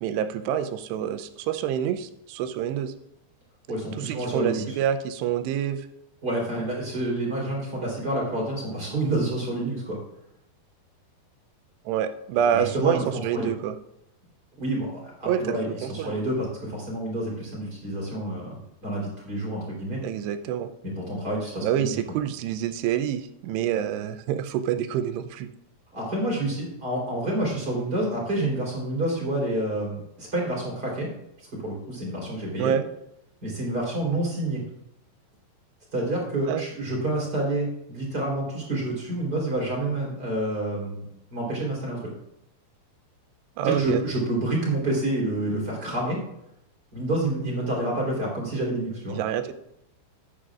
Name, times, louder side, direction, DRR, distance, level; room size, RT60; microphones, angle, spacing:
voice 1, 0.0-2.9 4.0-5.8 11.9-13.8 15.2-16.1 20.0-20.7 21.6-25.5 32.6-32.8 36.5-36.6 43.6-44.0 49.1-49.5, right 9 dB, 90° right, 9 dB, 2.8 m, -27 dB
voice 2, 3.7-4.8 6.2-10.0 12.5-13.5 14.6-18.5 18.8-20.0 21.0-21.9 25.9-31.1 31.5-32.7 33.4-34.6 35.9-41.0 41.3-42.0 43.6-46.2 46.9-49.2, right 1 dB, 25° right, -3 dB, 3.8 m, -28 dB
14.0 x 10.5 x 2.5 m, 0.81 s
omnidirectional pair, 4.8 m